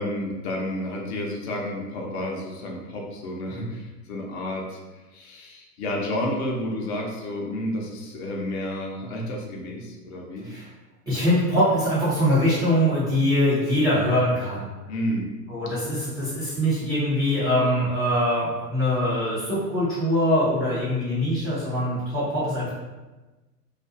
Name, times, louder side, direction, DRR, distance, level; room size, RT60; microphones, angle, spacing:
voice 1, 0.0-4.8 5.1-10.5 14.9-15.3, left 1 dB, 45° left, -1 dB, 0.6 m, -30 dB
voice 2, 11.1-14.7 15.5-22.7, equal, 10° right, -13 dB, 0.4 m, -23 dB
2.4 x 2.2 x 2.5 m, 1.2 s
hypercardioid pair, 105°, 48 cm